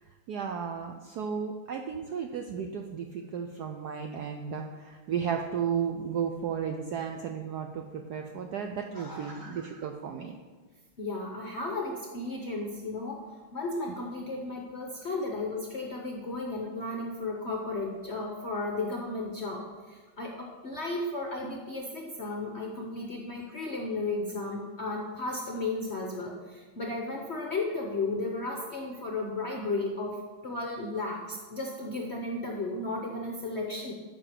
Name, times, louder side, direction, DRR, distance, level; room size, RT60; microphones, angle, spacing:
voice 1, 0.3-10.4, right 7 dB, 75° right, 4 dB, 0.9 m, -34 dB
voice 2, 8.9-9.5 11.0-33.9, left 2 dB, 55° left, 0 dB, 0.7 m, -34 dB
12.0 x 5.0 x 5.0 m, 1.4 s
omnidirectional pair, 2.3 m